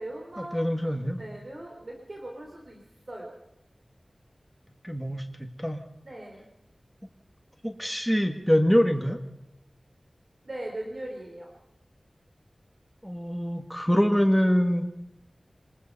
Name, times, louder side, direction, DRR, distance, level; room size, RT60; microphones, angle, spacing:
voice 1, 0.0-0.6 1.2-2.8 3.1-3.3 6.0-6.5 10.4-11.5, right 1 dB, 50° right, 0 dB, 3.8 m, -39 dB
voice 2, 0.5-1.2 4.8-5.8 7.6-9.2 13.0-14.9, equal, ahead, 5 dB, 1.7 m, -24 dB
24.5 x 20.5 x 5.6 m, 0.86 s
wide cardioid pair, 75°, 0 cm